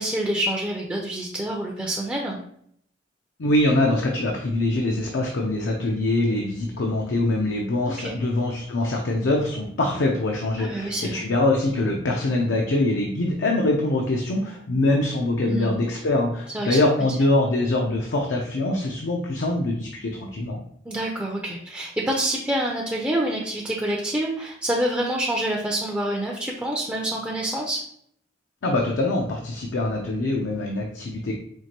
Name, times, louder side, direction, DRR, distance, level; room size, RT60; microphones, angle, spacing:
voice 1, 0.0-2.4 8.0-8.1 10.6-11.2 15.5-15.8 16.5-16.8 20.8-27.8, right 1 dB, 10° right, -2 dB, 0.4 m, -27 dB
voice 2, 3.4-20.6 28.6-31.4, left 2 dB, 75° left, 0 dB, 0.5 m, -23 dB
4.5 x 2.5 x 2.8 m, 0.68 s
head